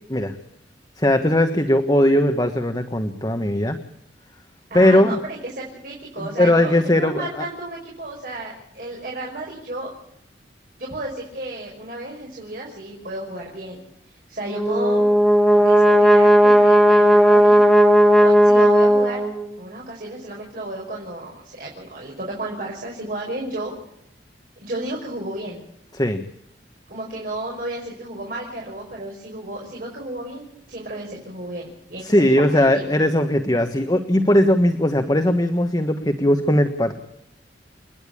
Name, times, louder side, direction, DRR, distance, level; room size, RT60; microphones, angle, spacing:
voice 1, 1.0-3.8 4.7-5.2 6.2-7.4 25.9-26.2 32.0-37.0, left 1 dB, 20° left, 6 dB, 1.4 m, -19 dB
voice 2, 4.7-9.9 10.8-13.8 14.1-15.1 15.5-17.6 18.2-19.2 19.6-23.7 24.6-25.6 26.9-32.2 32.5-32.9, right 1 dB, 50° right, -2 dB, 5.6 m, -33 dB
Brass instrument, 14.5-19.5, equal, ahead, 2.7 m, -14 dB
29.5 x 10.5 x 8.8 m, 0.78 s
head